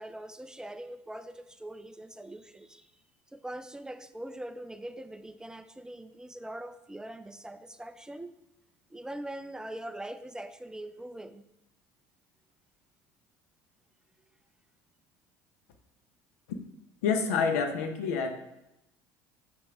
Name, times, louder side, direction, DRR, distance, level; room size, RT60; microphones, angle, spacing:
voice 1, 0.0-2.9 3.3-8.3 8.9-11.5, right 1 dB, 10° right, 11 dB, 0.4 m, -42 dB
voice 2, 17.0-18.3, left 5 dB, 90° left, 6 dB, 0.8 m, -27 dB
6.5 x 5.2 x 3.6 m, 0.86 s
supercardioid pair, 95°, 8 cm